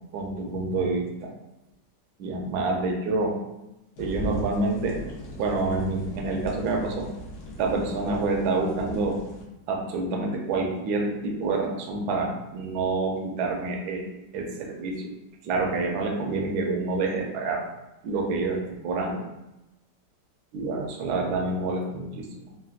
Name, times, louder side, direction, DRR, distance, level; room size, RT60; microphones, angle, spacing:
voice 1, 0.0-1.3 2.2-3.4 4.0-5.0 5.4-7.1 7.6-9.2 9.7-14.1 14.3-15.1 15.4-17.6 18.0-19.2 20.5-22.3, right 3 dB, 70° right, 1 dB, 1.0 m, -27 dB
sound 1, 4.0-9.4, equal, 70° left, 1.1 m, -39 dB
3.9 x 2.2 x 2.3 m, 0.95 s
omnidirectional pair, 2.0 m